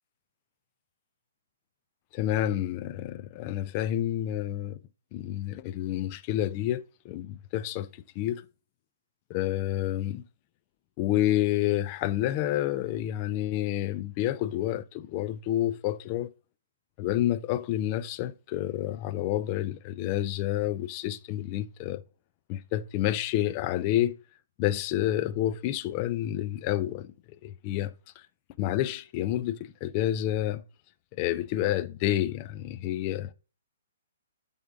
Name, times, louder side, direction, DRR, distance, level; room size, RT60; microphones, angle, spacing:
voice 1, 2.1-4.8 5.1-7.9 8.2-8.4 9.3-10.2 11.0-16.3 17.0-22.0 22.5-24.1 24.6-27.1 27.4-27.9 28.6-30.6 31.2-33.3, left 13 dB, 35° left, 0.5 m, -29 dB
7.9 x 3.6 x 3.5 m
figure-of-eight pair, 125°, 0 cm